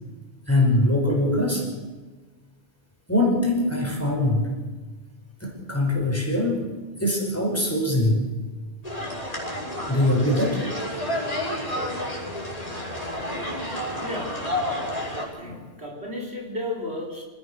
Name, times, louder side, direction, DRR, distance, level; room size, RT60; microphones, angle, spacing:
voice 1, 0.5-1.6 3.1-4.5 5.4-6.6 7.0-8.2 9.9-10.6, left 1 dB, 15° left, 0 dB, 5.4 m, -22 dB
sound 1, 8.8-15.2, left 1 dB, 35° left, 6.4 m, -30 dB
voice 2, 14.0-14.4 15.4-17.2, left 1 dB, 70° right, -2 dB, 4.7 m, -33 dB
26.5 x 16.0 x 6.6 m, 1.3 s
omnidirectional pair, 1.1 m